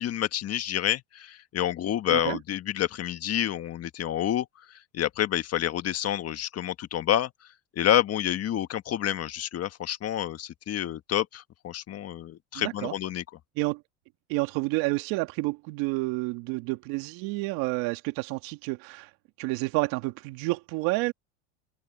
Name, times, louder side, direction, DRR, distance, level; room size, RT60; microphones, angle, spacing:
voice 1, 0.0-7.3 7.7-13.2, left 11 dB, 40° left, 1.7 m, -28 dB
voice 2, 12.6-12.9 13.6-13.8 14.3-19.1 19.4-21.1, right 24 dB, 65° right, 2.0 m, -29 dB
supercardioid pair, 100°, 38 cm